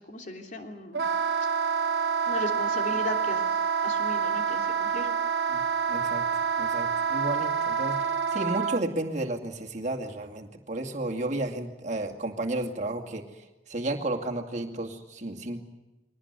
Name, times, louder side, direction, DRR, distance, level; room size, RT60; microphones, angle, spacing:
voice 1, 0.1-1.1 2.2-5.1, left 1 dB, 45° left, 3 dB, 3.2 m, -37 dB
Wind instrument woodwind instrument, 0.9-8.8, right 6 dB, 70° right, 1.2 m, -27 dB
voice 2, 5.9-6.2 6.6-13.2 13.7-15.6, right 2 dB, 40° right, 1 dB, 2.4 m, -32 dB
23.0 x 19.0 x 9.6 m, 1.0 s
head